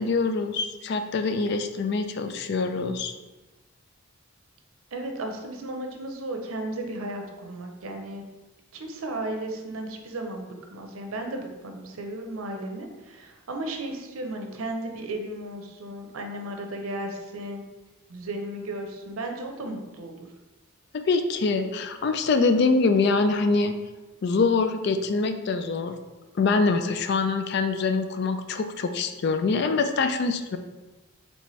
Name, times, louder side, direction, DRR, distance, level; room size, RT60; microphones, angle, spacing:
voice 1, 0.0-3.1 20.9-23.8 24.2-25.9 26.4-30.6, left 4 dB, 50° left, 8 dB, 0.3 m, -24 dB
voice 2, 4.9-8.2 8.7-17.6 18.1-20.3, right 1 dB, 85° right, 3 dB, 0.6 m, -34 dB
4.1 x 3.3 x 3.1 m, 1.1 s
head